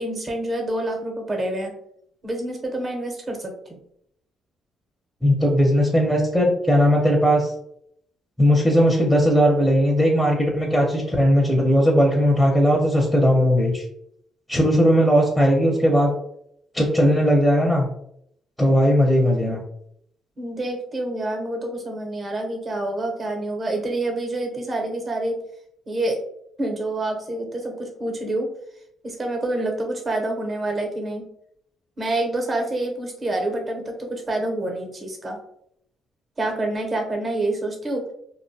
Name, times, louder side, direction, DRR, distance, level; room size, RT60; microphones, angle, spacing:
voice 1, 0.0-1.7 2.2-3.8 20.4-25.3 25.9-26.2 26.6-28.5 29.0-31.2 32.0-35.4 36.4-38.0, right 1 dB, 35° right, 2 dB, 0.7 m, -27 dB
voice 2, 5.2-7.5 8.4-13.8 14.5-16.1 16.7-17.9 18.6-19.6, equal, ahead, -1 dB, 0.6 m, -18 dB
2.4 x 2.1 x 2.6 m, 0.71 s
cardioid pair, 90°, 0 cm